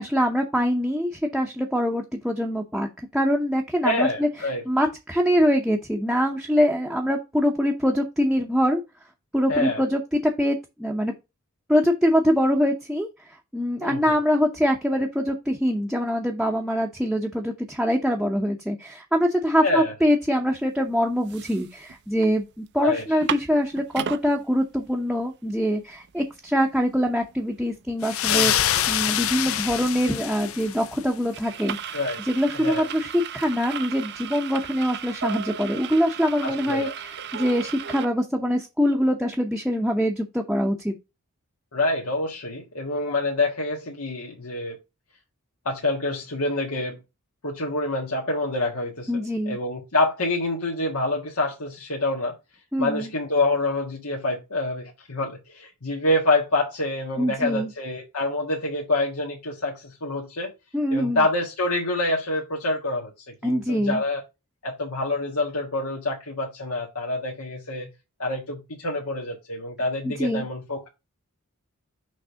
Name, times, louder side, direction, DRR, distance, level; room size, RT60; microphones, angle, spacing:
voice 1, 0.0-2.9 3.1-4.3 4.7-8.8 9.3-11.1 11.7-13.1 13.5-28.5 28.9-32.0 32.2-40.9 49.1-49.6 52.7-53.1 57.2-57.7 60.7-61.2 63.4-64.0 70.0-70.5, equal, 5° right, 0.7 m, -24 dB
voice 2, 3.8-4.6 9.5-9.8 13.8-14.2 19.6-19.9 22.8-23.0 28.3-28.7 31.9-32.2 32.5-32.9 36.4-36.9 41.7-44.8 45.6-47.0 47.4-52.4 52.8-60.5 60.9-63.1 63.4-64.2 64.6-67.9 68.2-70.9, left 2 dB, 90° left, 1.6 m, -26 dB
sound 1, 20.6-20.7 21.1-22.3 22.7-22.8 23.0-24.2 24.8-24.9 25.2-38.1, right 8 dB, 50° right, 0.5 m, -36 dB
sound 2, 28.0-31.1, left 11 dB, 65° left, 0.5 m, -25 dB
6.2 x 3.3 x 5.6 m
head